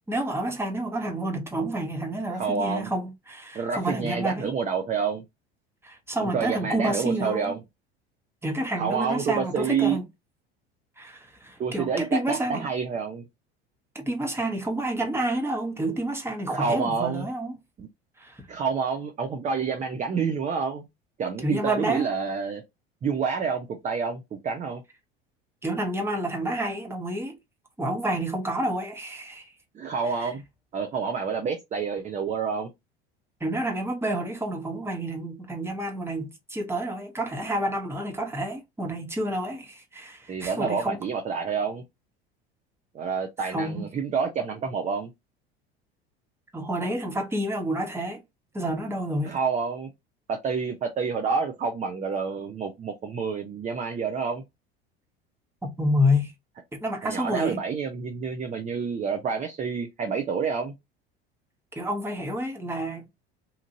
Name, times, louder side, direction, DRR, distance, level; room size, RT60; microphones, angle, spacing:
voice 1, 0.1-4.5 5.8-7.6 8.4-10.0 11.0-12.7 13.9-17.6 18.2-18.5 21.4-22.1 25.6-27.4 27.8-29.5 30.2-30.3 33.4-41.0 43.4-43.9 46.5-48.2 48.5-49.4 55.6-56.3 56.7-57.6 61.7-63.0, equal, 10° right, 0.9 m, -29 dB
voice 2, 2.3-2.9 3.5-5.2 6.2-7.6 8.8-10.0 11.6-13.2 16.5-17.3 17.8-17.9 18.5-20.9 21.2-22.6 23.0-24.8 29.7-30.4 30.7-32.7 40.3-41.8 42.9-45.1 49.2-49.9 50.3-54.4 57.0-60.7, right 5 dB, 25° right, 0.5 m, -28 dB
2.8 x 2.5 x 2.6 m
hypercardioid pair, 70°, 31 cm